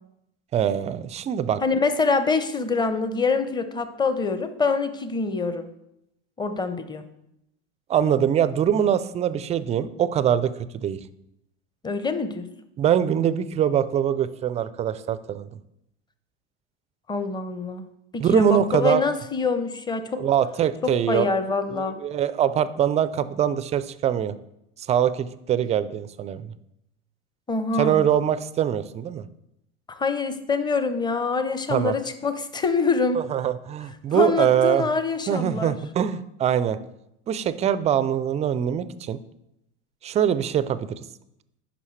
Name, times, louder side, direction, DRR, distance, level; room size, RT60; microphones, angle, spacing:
voice 1, 0.5-1.6 7.9-10.5 10.8-11.0 12.8-15.5 18.2-19.0 20.2-21.3 21.7-24.3 24.9-26.5 27.8-29.2 31.7-31.9 33.3-34.9 35.3-36.8 37.3-39.2 40.0-41.0, right 9 dB, 20° right, 15 dB, 0.3 m, -23 dB
voice 2, 1.6-5.7 6.4-7.0 11.8-12.5 17.1-17.9 18.1-20.2 20.8-22.0 27.5-28.0 29.9-33.2 34.1-35.8, left 4 dB, 10° left, 10 dB, 0.7 m, -25 dB
9.9 x 5.6 x 3.2 m, 0.82 s
hypercardioid pair, 90°, 35 cm